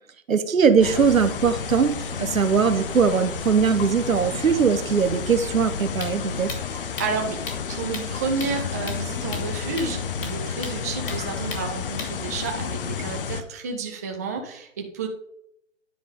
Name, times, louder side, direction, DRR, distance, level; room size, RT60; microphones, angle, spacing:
voice 1, 0.3-1.9 2.2-6.5, right 6 dB, 85° right, 11 dB, 1.1 m, -20 dB
sound 1, 0.6-6.6, left 1 dB, 90° left, 3.3 m, -40 dB
sound 2, 0.8-13.4, left 7 dB, 45° left, 0.8 m, -31 dB
sound 3, 5.6-12.5, left 3 dB, 70° left, 3.0 m, -40 dB
voice 2, 6.7-7.4 7.7-15.1, right 4 dB, 15° right, 2 dB, 0.5 m, -31 dB
9.8 x 5.3 x 5.1 m, 0.73 s
hypercardioid pair, 145°, 39 cm